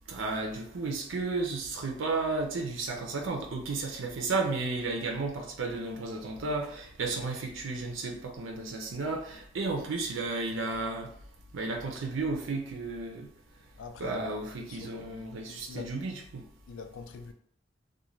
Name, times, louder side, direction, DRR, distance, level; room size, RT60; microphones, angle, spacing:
voice 1, 0.1-11.1 11.5-13.3 14.0-16.4, right 3 dB, 90° right, 0.5 m, -33 dB
voice 2, 13.8-15.9 16.7-17.3, left 5 dB, 85° left, 0.4 m, -45 dB
2.4 x 2.2 x 3.1 m
head